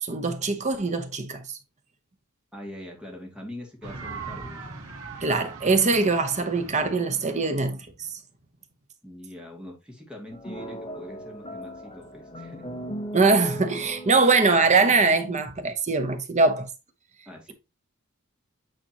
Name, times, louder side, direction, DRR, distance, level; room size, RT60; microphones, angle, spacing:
voice 1, 0.0-1.6 5.2-7.9 13.1-16.7, right 3 dB, 35° right, 0.9 m, -22 dB
voice 2, 2.5-4.6 9.0-12.6 17.3-17.5, left 1 dB, 5° right, 2.3 m, -42 dB
sound 1, 3.8-8.7, right 4 dB, 75° right, 2.3 m, -41 dB
sound 2, 10.3-15.4, right 1 dB, 25° left, 1.3 m, -38 dB
8.8 x 4.3 x 2.9 m
head